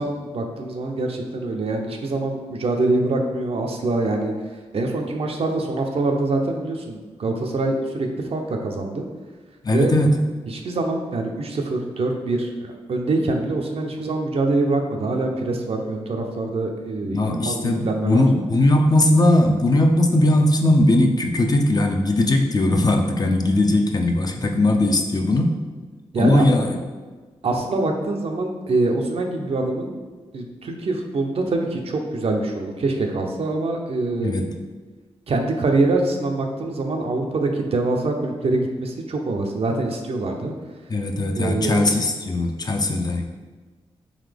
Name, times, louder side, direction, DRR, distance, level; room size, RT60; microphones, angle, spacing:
voice 1, 0.0-4.3 4.7-9.0 9.7-9.9 10.5-18.2 26.1-26.5 27.4-29.9 30.3-34.4 35.3-40.5 41.3-41.9, right 2 dB, 60° right, 2 dB, 0.6 m, -24 dB
voice 2, 9.6-10.2 17.1-25.6 26.2-26.8 34.2-34.5 40.9-43.2, left 1 dB, 35° left, 3 dB, 0.5 m, -19 dB
3.9 x 2.8 x 3.4 m, 1.4 s
cardioid pair, 60°, 11 cm